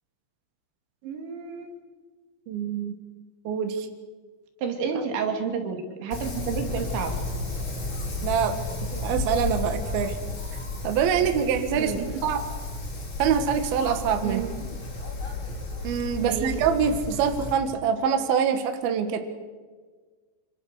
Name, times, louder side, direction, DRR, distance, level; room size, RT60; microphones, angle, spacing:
voice 1, 1.0-1.7 4.6-7.2 11.8-12.2 14.2-14.5 16.2-16.5, right 6 dB, 85° right, 4 dB, 4.9 m, -30 dB
voice 2, 2.5-3.0 3.4-3.9 4.9-5.0 8.2-8.5 8.9-10.2 10.8-11.9 12.2-12.4 13.2-14.4 15.8-19.2, right 7 dB, 65° right, 7 dB, 3.2 m, -25 dB
Wind, 6.1-17.5, left 3 dB, 30° left, 4.0 m, -33 dB
26.0 x 26.0 x 6.7 m, 1.4 s
omnidirectional pair, 5.1 m